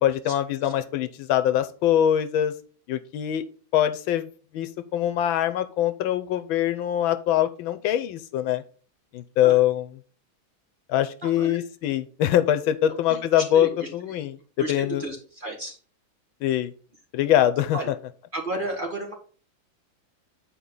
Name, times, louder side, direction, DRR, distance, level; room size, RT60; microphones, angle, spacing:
voice 1, 0.0-2.5 2.9-3.4 3.7-4.3 4.5-8.6 9.1-9.9 10.9-14.4 14.7-15.0 16.4-16.7 17.1-17.8, left 11 dB, 85° left, 10 dB, 1.5 m, -23 dB
voice 2, 11.2-11.6 13.1-13.2 13.5-13.9 14.6-15.8 17.7-17.9 18.3-19.1, right 2 dB, 25° right, 0 dB, 1.7 m, -32 dB
8.5 x 4.5 x 3.8 m, 0.40 s
omnidirectional pair, 2.2 m